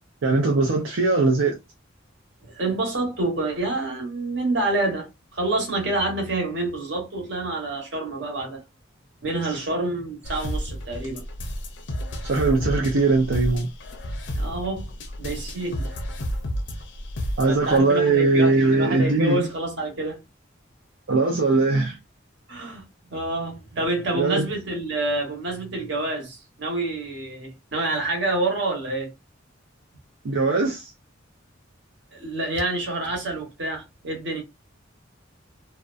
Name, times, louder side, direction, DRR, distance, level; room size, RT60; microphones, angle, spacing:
voice 1, 0.2-1.6 9.5-9.6 12.2-13.7 17.4-19.5 21.1-22.0 24.1-24.4 30.2-30.9, right 3 dB, 85° right, 0.5 m, -20 dB
voice 2, 2.4-8.6 9.2-11.2 14.3-14.9 15.2-16.0 17.5-20.2 22.5-22.8 23.1-29.1 32.1-34.4, right 2 dB, 65° right, 1.1 m, -27 dB
sound 1, 10.2-17.8, equal, 65° left, 0.6 m, -31 dB
2.5 x 2.1 x 2.4 m
head